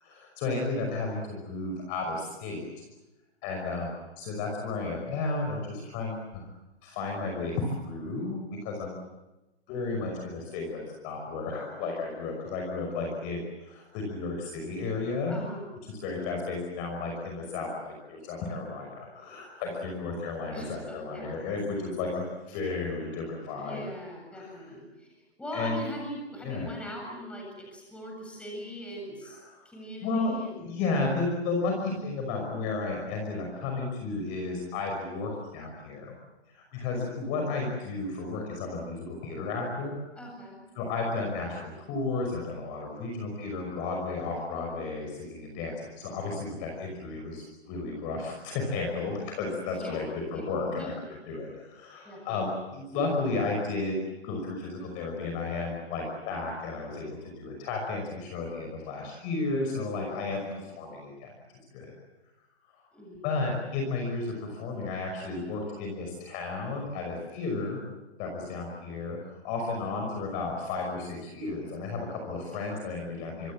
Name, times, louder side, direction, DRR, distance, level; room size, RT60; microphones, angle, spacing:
voice 1, 0.0-2.7 3.4-6.5 6.8-8.9 9.7-15.3 15.9-23.8 24.3-24.5 25.5-25.8 26.4-26.7 29.2-29.7 30.0-30.3 30.6-36.2 36.5-40.0 40.7-50.9 51.3-61.3 61.7-61.9 63.2-67.8 68.2-73.5, left 3 dB, 25° left, 1 dB, 5.8 m, -33 dB
voice 2, 15.3-15.7 20.5-21.5 23.5-29.4 29.6-30.6 40.2-40.6 49.6-50.4 50.7-50.9 52.0-52.5 59.9-60.3 60.8-61.0 62.9-63.3 72.5-72.8, equal, 5° left, 0 dB, 7.6 m, -41 dB
26.0 x 24.5 x 7.7 m, 1.0 s
hypercardioid pair, 155°, 32 cm